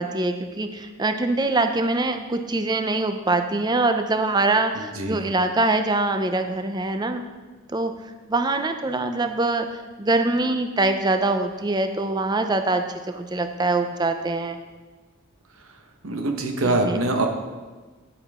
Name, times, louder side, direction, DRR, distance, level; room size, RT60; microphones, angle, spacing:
voice 1, 0.0-7.2 7.7-7.9 8.3-9.7 10.0-14.6 16.6-17.0, right 2 dB, 20° right, 7 dB, 0.5 m, -23 dB
voice 2, 4.7-5.2 16.0-17.3, right 2 dB, 80° right, 4 dB, 1.1 m, -24 dB
9.9 x 8.3 x 3.6 m, 1.3 s
head